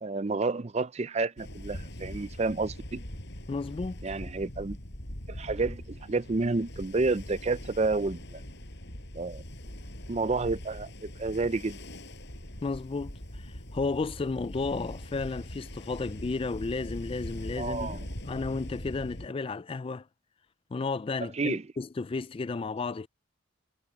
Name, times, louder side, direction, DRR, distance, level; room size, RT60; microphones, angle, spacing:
voice 1, 0.0-3.0 4.0-4.8 5.3-8.4 9.1-9.4 10.1-11.8 17.6-18.0 21.3-21.6, right 3 dB, 30° right, 0.5 m, -30 dB
Ocean, 1.4-19.3, left 1 dB, 55° left, 6.1 m, -42 dB
voice 2, 3.5-4.0 12.6-20.1 20.7-23.1, left 3 dB, 25° left, 0.3 m, -33 dB
head